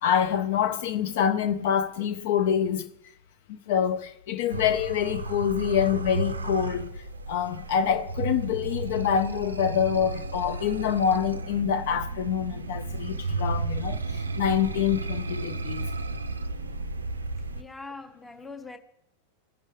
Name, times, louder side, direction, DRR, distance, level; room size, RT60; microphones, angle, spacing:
voice 1, 0.0-2.9 3.5-6.9 7.3-15.9, left 8 dB, 50° left, 0.4 m, -26 dB
sound 1, 4.5-17.6, right 3 dB, 75° right, 0.4 m, -33 dB
voice 2, 17.6-18.8, left 3 dB, 10° left, 0.7 m, -41 dB
14.5 x 5.3 x 3.2 m
figure-of-eight pair, 90°, 0 cm